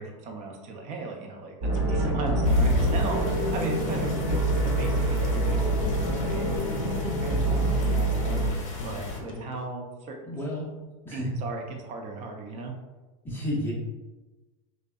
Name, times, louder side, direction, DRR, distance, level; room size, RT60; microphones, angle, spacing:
voice 1, 0.0-3.2 3.5-4.2 4.8-8.4 8.8-10.3 11.1-12.7, right 3 dB, 40° right, 2 dB, 0.5 m, -36 dB
sound 1, 1.6-8.5, right 2 dB, 60° right, 1.1 m, -26 dB
sound 2, 1.7-3.4 3.8-5.5 5.8-9.5, left 3 dB, 90° left, 0.4 m, -39 dB
sound 3, 2.4-9.2, left 4 dB, 45° left, 0.8 m, -32 dB
voice 2, 10.2-10.7 11.0-11.3 13.2-13.7, left 1 dB, 10° left, -6 dB, 0.5 m, -31 dB
2.6 x 2.2 x 2.3 m, 1.2 s
hypercardioid pair, 110°, 17 cm